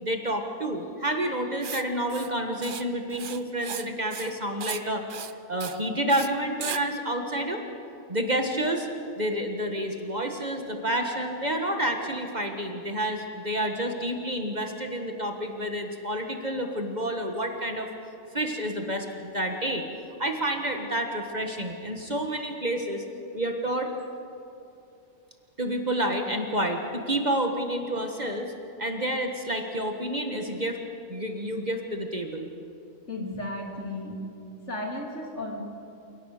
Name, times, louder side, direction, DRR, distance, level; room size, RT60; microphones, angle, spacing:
voice 1, 0.0-5.0 5.5-7.6 8.1-8.9 9.2-17.9 18.3-19.8 20.2-23.0 23.3-23.9 25.6-28.5 28.8-30.8 31.1-32.5, right 1 dB, 35° right, 4 dB, 1.6 m, -29 dB
Writing, 1.6-1.8 2.1-2.3 2.6-2.8 3.1-4.3 4.6-4.8 5.1-5.3 5.6-5.8 6.1-6.3 6.6-6.8, right 8 dB, 50° right, 0.7 m, -36 dB
voice 2, 33.1-34.3 34.7-35.6, left 1 dB, 60° left, 0 dB, 3.4 m, -34 dB
28.5 x 18.5 x 6.6 m, 2.7 s
omnidirectional pair, 1.4 m